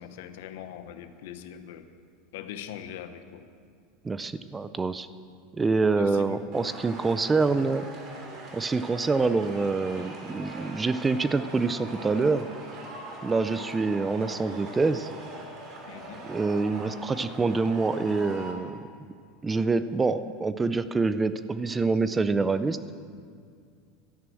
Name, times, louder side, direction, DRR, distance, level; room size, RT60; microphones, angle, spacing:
voice 1, 0.0-1.9 2.3-3.5 6.0-6.5 15.9-16.2, left 9 dB, 75° left, 10 dB, 1.0 m, -41 dB
voice 2, 4.0-5.1 5.5-7.9 8.5-12.5 13.2-15.1 16.3-18.8 19.4-22.8, right 4 dB, 15° right, 13 dB, 0.4 m, -26 dB
sound 1, 6.5-18.5, right 2 dB, 40° right, 2.8 m, -42 dB
13.0 x 10.5 x 7.7 m, 2.2 s
supercardioid pair, 140°, 0 cm